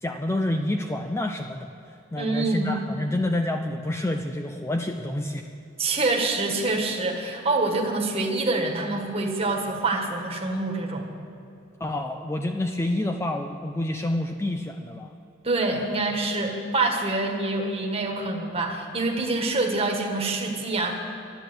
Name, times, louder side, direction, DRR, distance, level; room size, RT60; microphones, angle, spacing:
voice 1, 0.0-1.7 2.1-5.5 11.8-15.1, left 1 dB, 15° left, 5 dB, 0.4 m, -28 dB
voice 2, 2.1-2.8 5.8-11.1 15.4-20.9, right 2 dB, 30° right, 1 dB, 1.6 m, -26 dB
12.0 x 10.0 x 7.9 m, 2.7 s
head